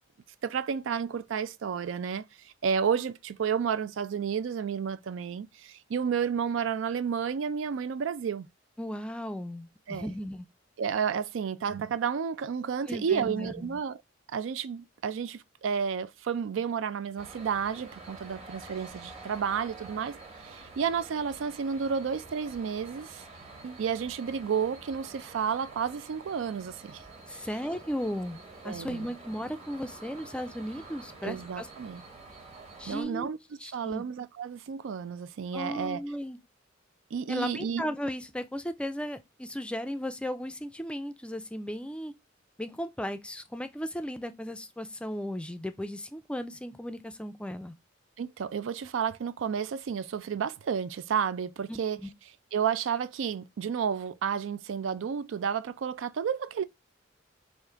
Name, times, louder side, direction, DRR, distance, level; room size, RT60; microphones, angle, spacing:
voice 1, 0.4-8.5 9.9-10.1 10.8-14.0 14.3-23.2 23.6-27.0 27.3-27.5 28.6-29.1 31.2-32.0 32.9-33.4 33.7-36.0 37.1-37.8 48.2-52.0 52.5-56.6, right 7 dB, 90° right, 0.4 m, -31 dB
voice 2, 8.8-10.5 12.9-13.8 27.3-28.4 28.6-31.7 32.8-33.3 33.6-34.0 35.5-36.4 37.3-42.1 42.6-47.7 51.7-52.1, equal, 5° left, 0.4 m, -36 dB
sound 1, 17.2-33.0, right 3 dB, 35° right, 1.1 m, -48 dB
3.5 x 2.6 x 4.4 m
head